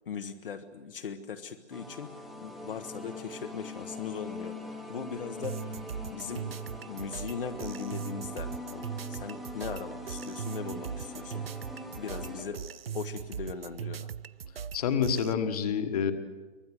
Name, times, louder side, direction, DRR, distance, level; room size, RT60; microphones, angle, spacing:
voice 1, 0.1-2.1 2.4-4.5 4.9-5.7 6.1-6.5 6.9-11.4 12.0-12.6 12.9-14.1, left 6 dB, 55° left, 6 dB, 1.3 m, -39 dB
sound 1, 1.7-12.5, left 1 dB, ahead, 1.2 m, -42 dB
sound 2, 5.4-15.3, right 8 dB, 60° right, 0.7 m, -40 dB
voice 2, 14.7-16.1, left 7 dB, 35° left, 8 dB, 1.6 m, -28 dB
25.0 x 18.5 x 7.8 m, 1.3 s
hypercardioid pair, 155°, 34 cm